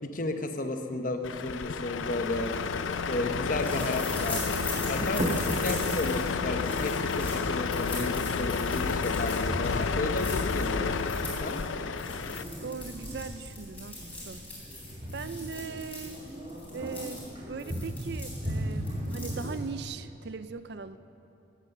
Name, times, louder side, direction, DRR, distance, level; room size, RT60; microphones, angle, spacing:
voice 1, 0.0-2.5 3.1-4.4 4.8-10.9 11.4-11.6, left 2 dB, 45° left, 6 dB, 0.9 m, -33 dB
Truck, 1.2-12.4, left 5 dB, 80° left, 0.5 m, -30 dB
sound 1, 3.6-19.8, left 2 dB, 10° left, 3.8 m, -42 dB
sound 2, 4.1-19.6, equal, 30° right, 1.5 m, -38 dB
voice 2, 12.6-14.4 15.1-16.2 16.7-17.2 17.5-21.0, right 5 dB, 55° right, 12 dB, 0.4 m, -39 dB
16.5 x 8.4 x 6.6 m, 2.9 s
head